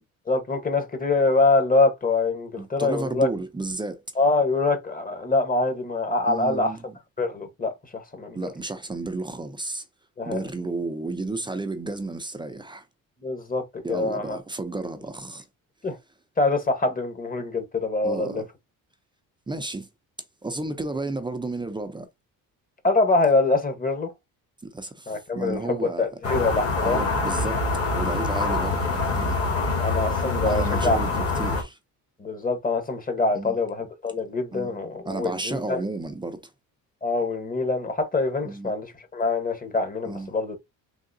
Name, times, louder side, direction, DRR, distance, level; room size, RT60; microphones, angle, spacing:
voice 1, 0.3-3.3 4.2-6.8 7.2-8.4 10.2-10.4 13.2-14.4 15.8-16.0 16.4-18.4 22.8-24.1 25.1-27.1 29.8-31.0 32.2-35.8 37.0-40.6, left 3 dB, 25° left, 1.1 m, -24 dB
voice 2, 2.6-4.0 6.2-7.0 8.3-9.8 10.2-12.9 13.8-15.5 18.0-18.4 19.5-19.9 20.4-22.1 24.6-26.1 26.8-27.6 27.9-29.4 30.4-31.8 33.3-33.6 34.5-36.5 38.4-38.7 40.0-40.3, right 2 dB, 15° right, 0.5 m, -32 dB
sound 1, 26.2-31.6, left 3 dB, 40° left, 1.4 m, -25 dB
3.6 x 2.8 x 2.6 m
cardioid pair, 110°, 36 cm